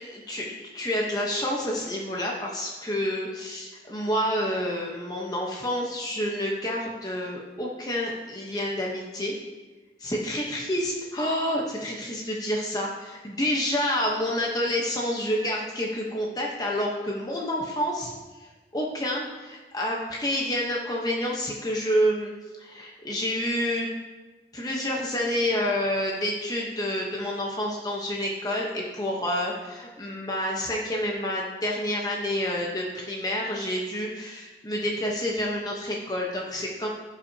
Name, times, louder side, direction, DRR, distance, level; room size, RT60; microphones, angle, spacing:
voice 1, 0.3-9.3 10.0-22.3 22.6-23.9 24.5-36.9, equal, 20° left, -2 dB, 1.0 m, -28 dB
16.0 x 5.8 x 2.8 m, 1.2 s
head